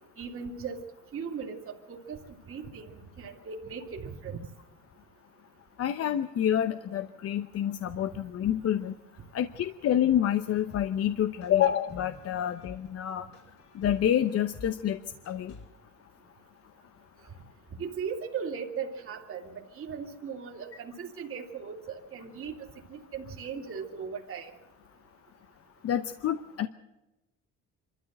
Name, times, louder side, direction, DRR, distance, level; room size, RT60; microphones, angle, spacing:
voice 1, 0.2-0.8 1.1-2.9 3.2-4.4 17.8-24.5, right 6 dB, 45° right, 2 dB, 2.7 m, -38 dB
voice 2, 5.8-8.9 9.3-13.3 13.7-15.0 15.3-15.5 25.8-26.7, left 10 dB, 55° left, 10 dB, 0.9 m, -28 dB
sound 1, 10.4-15.7, left 3 dB, 70° left, 6.4 m, -48 dB
25.5 x 13.5 x 7.9 m, 0.98 s
cardioid pair, 120°, 30 cm